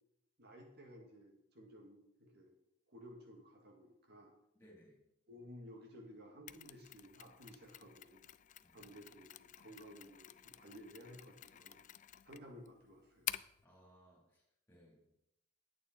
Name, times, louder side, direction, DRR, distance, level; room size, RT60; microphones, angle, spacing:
voice 1, 0.4-2.5 2.9-4.3 5.3-8.2 8.7-11.8 12.2-13.4, equal, 60° right, 1 dB, 1.9 m, -56 dB
voice 2, 4.5-5.0 8.6-9.0 13.6-15.0, equal, 10° left, -3 dB, 3.9 m, -64 dB
Mechanisms, 6.5-13.6, left 12 dB, 40° left, 0.3 m, -49 dB
11.0 x 8.5 x 4.5 m, 0.81 s
head